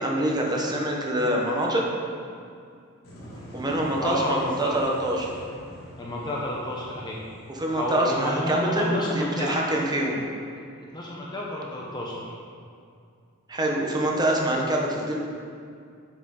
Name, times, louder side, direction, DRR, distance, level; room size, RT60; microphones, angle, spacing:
voice 1, 0.0-1.9 3.5-5.3 7.5-10.2 13.5-15.2, right 1 dB, 20° right, -1 dB, 1.0 m, -25 dB
sound 1, 3.0-8.9, equal, 45° left, 1.9 m, -45 dB
voice 2, 4.0-4.3 4.6-4.7 6.0-7.2 7.8-9.6 10.8-12.3, left 1 dB, 20° left, -4 dB, 0.8 m, -30 dB
8.2 x 6.8 x 3.8 m, 2.4 s
head